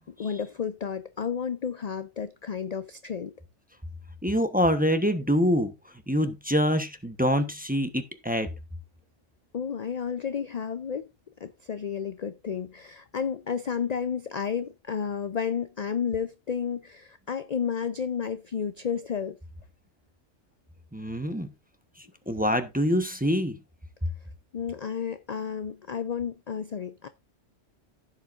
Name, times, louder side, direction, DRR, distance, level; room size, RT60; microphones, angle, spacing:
voice 1, 0.2-3.3 9.5-11.1 11.4-19.4 24.5-27.1, left 7 dB, 50° left, 0.5 m, -31 dB
voice 2, 4.2-5.7 6.1-8.5 20.9-21.5 22.3-23.6, equal, 10° right, 0.9 m, -25 dB
15.5 x 7.4 x 2.5 m
omnidirectional pair, 1.3 m